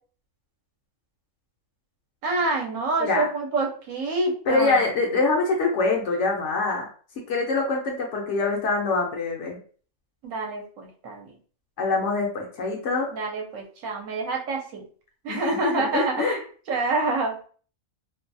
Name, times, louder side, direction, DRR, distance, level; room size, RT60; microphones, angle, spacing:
voice 1, 2.2-4.9 10.2-11.4 13.1-14.8 15.2-16.4 16.7-17.4, right 3 dB, 70° right, 0 dB, 1.0 m, -27 dB
voice 2, 4.5-6.9 7.3-9.6 11.8-13.1 15.3-16.4, left 3 dB, 65° left, 0 dB, 0.8 m, -24 dB
2.6 x 2.3 x 2.5 m, 0.43 s
omnidirectional pair, 1.5 m